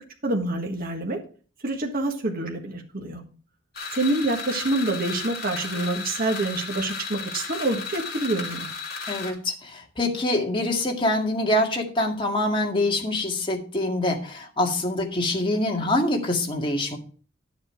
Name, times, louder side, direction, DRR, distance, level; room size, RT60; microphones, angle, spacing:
voice 1, 0.2-1.2 1.6-3.2 3.9-8.7, right 2 dB, 45° right, 2 dB, 1.6 m, -27 dB
sound 1, 3.7-9.3, left 4 dB, 50° left, 3.7 m, -34 dB
voice 2, 9.1-17.0, left 1 dB, 25° left, 1 dB, 2.1 m, -25 dB
11.5 x 7.3 x 4.5 m, 0.40 s
head